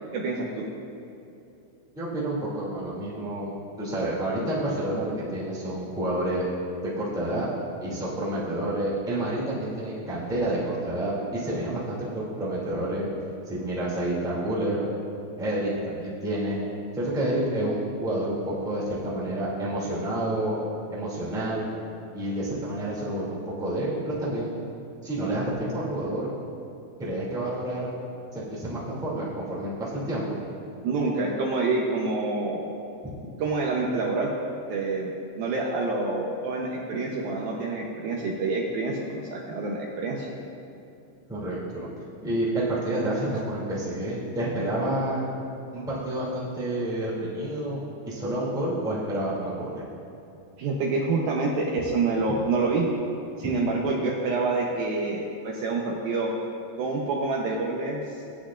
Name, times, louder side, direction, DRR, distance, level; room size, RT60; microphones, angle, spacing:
voice 1, 0.1-0.6 30.8-32.7 33.4-34.3 34.7-40.3 50.6-52.9 53.4-56.3 56.8-58.2, right 3 dB, 80° right, -2 dB, 2.1 m, -27 dB
voice 2, 1.9-3.5 3.8-6.4 6.8-7.5 7.8-13.1 13.4-14.8 15.4-16.6 16.9-20.6 20.9-21.7 22.1-24.6 25.0-26.3 27.0-27.9 28.3-30.4 41.3-41.9 42.2-45.3 45.7-49.8, right 1 dB, 5° right, -8 dB, 0.5 m, -29 dB
19.0 x 8.7 x 2.5 m, 2.7 s
omnidirectional pair, 5.3 m